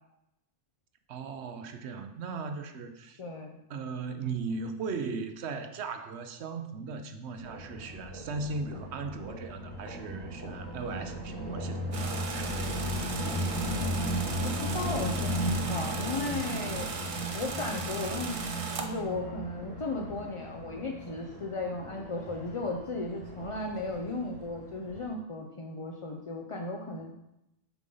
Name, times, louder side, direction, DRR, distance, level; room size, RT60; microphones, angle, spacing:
voice 1, 1.1-3.2 3.7-12.8, right 4 dB, 60° right, 8 dB, 0.9 m, -38 dB
voice 2, 3.2-3.6 14.3-16.9 17.3-18.4 18.8-27.1, left 2 dB, 45° left, 1 dB, 0.4 m, -35 dB
sound 1, 7.4-25.0, equal, 20° left, 1.3 m, -36 dB
sound 2, 11.9-18.9, right 4 dB, 45° right, 0.4 m, -38 dB
7.1 x 5.2 x 3.9 m, 0.86 s
omnidirectional pair, 1.4 m